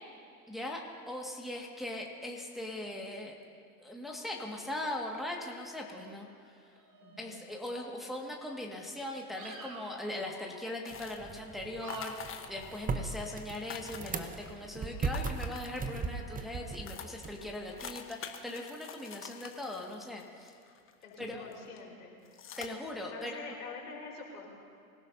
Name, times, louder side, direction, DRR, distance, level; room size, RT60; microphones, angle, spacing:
voice 1, 0.5-3.4 3.8-6.3 7.2-20.5 21.2-21.5 22.6-23.4, left 1 dB, ahead, -1 dB, 2.0 m, -40 dB
sound 1, 6.4-7.6 7.9-8.5 8.9-11.4 11.8-13.0, right 3 dB, 40° right, 2.8 m, -52 dB
voice 2, 7.0-7.4 21.0-22.2 23.1-24.5, left 4 dB, 80° left, -3 dB, 4.8 m, -45 dB
sound 2, 10.8-11.4 11.9-12.8 13.1-13.2 13.4-14.5 15.0-16.1 16.5-16.6 16.9-21.1 21.5-21.8 22.2-22.7, left 8 dB, 25° left, 1.2 m, -46 dB
sound 3, 10.9-17.9, right 4 dB, 20° right, 1.0 m, -39 dB
25.0 x 16.5 x 2.8 m, 2.4 s
hypercardioid pair, 85°, 46 cm